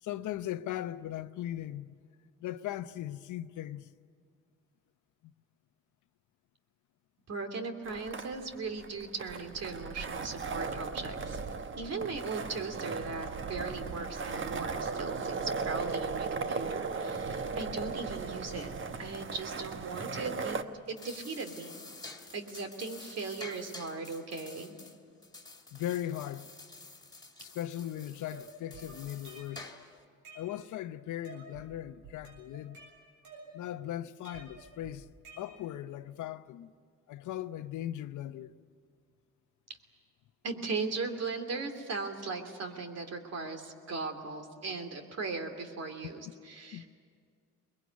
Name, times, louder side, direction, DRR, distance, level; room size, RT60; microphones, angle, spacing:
voice 1, 0.0-2.0 2.4-3.9 5.2-5.3 25.7-26.5 27.4-29.7 30.3-32.8 33.5-35.1 35.4-36.7 37.1-38.5 46.7-46.9, left 12 dB, 75° left, 0.8 m, -38 dB
voice 2, 7.3-11.4 11.8-18.7 19.0-20.6 20.9-21.8 22.3-24.7 40.4-46.9, right 4 dB, 55° right, 3.0 m, -38 dB
sound 1, 7.9-20.6, right 4 dB, 40° right, 1.2 m, -37 dB
sound 2, 20.8-30.0, left 3 dB, 15° left, 2.7 m, -50 dB
sound 3, 28.3-29.7 30.0-30.9 31.2-31.7 32.0-33.8 34.2-35.9, right 3 dB, 85° right, 7.8 m, -52 dB
22.5 x 21.5 x 9.6 m
cardioid pair, 90°, 30 cm